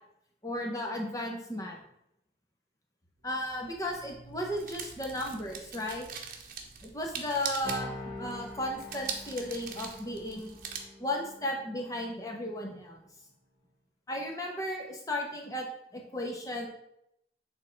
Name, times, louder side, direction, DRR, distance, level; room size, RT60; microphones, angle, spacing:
voice 1, 0.4-1.8 3.2-6.1 6.8-10.6 11.0-13.0 14.1-15.7 15.9-16.7, left 1 dB, 20° left, 0 dB, 1.1 m, -35 dB
sound 1, 3.2-10.8, right 6 dB, 50° right, 0.9 m, -43 dB
sound 2, 7.6-12.6, left 2 dB, 5° left, 1.7 m, -45 dB
8.6 x 3.8 x 4.5 m, 0.79 s
head